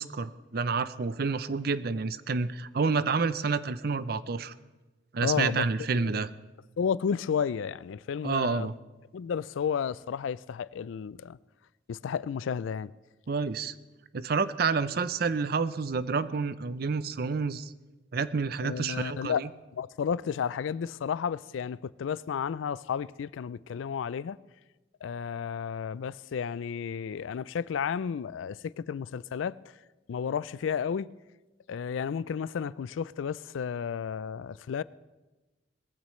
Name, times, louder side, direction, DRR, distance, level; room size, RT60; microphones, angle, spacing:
voice 1, 0.0-4.5 5.1-6.3 8.2-8.7 13.3-13.7 14.1-17.7 18.1-19.5, right 4 dB, 55° right, 0.5 m, -29 dB
voice 2, 5.2-6.1 6.8-8.7 9.1-11.4 11.9-12.9 18.6-19.4 19.7-24.4 25.0-29.6 30.1-31.1 31.7-34.8, left 7 dB, 90° left, 0.4 m, -32 dB
20.5 x 15.0 x 3.1 m
head